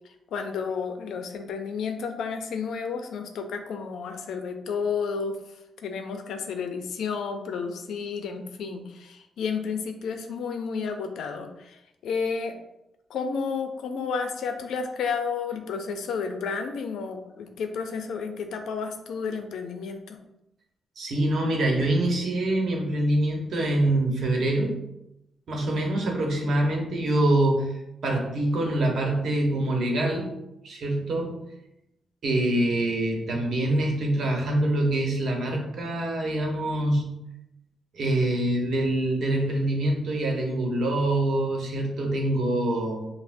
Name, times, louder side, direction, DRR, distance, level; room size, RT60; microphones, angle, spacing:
voice 1, 0.3-5.4 5.8-12.5 13.1-20.2, left 5 dB, 80° left, 6 dB, 0.4 m, -31 dB
voice 2, 21.0-24.8 25.5-27.7 28.0-30.3 30.6-31.3 32.2-37.1 37.9-43.1, right 1 dB, 65° right, 1 dB, 0.9 m, -25 dB
5.6 x 2.1 x 2.6 m, 0.88 s
cardioid pair, 65°, 0 cm